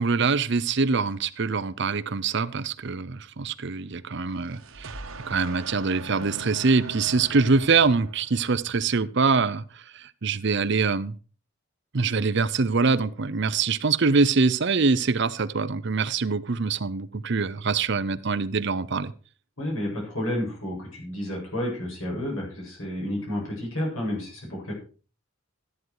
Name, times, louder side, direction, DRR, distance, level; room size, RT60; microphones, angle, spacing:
voice 1, 0.0-5.0 5.3-9.6 9.9-11.1 11.9-19.1, right 4 dB, 55° right, 14 dB, 0.7 m, -24 dB
sound 1, 4.2-8.7, right 3 dB, 75° right, 1.4 m, -41 dB
voice 2, 19.6-24.7, left 1 dB, 75° left, -2 dB, 7.7 m, -31 dB
13.5 x 9.5 x 4.8 m, 0.38 s
head